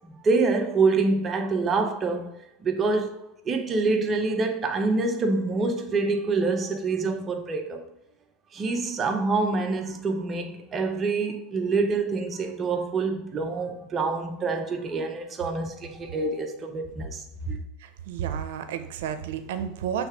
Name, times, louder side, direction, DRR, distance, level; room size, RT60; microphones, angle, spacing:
voice 1, 0.2-2.3 2.6-7.8 8.5-17.6, right 3 dB, 25° right, 0.8 m, -26 dB
voice 2, 17.8-20.1, right 8 dB, 80° right, 0.7 m, -31 dB
6.3 x 3.3 x 4.9 m
supercardioid pair, 140°, 0 cm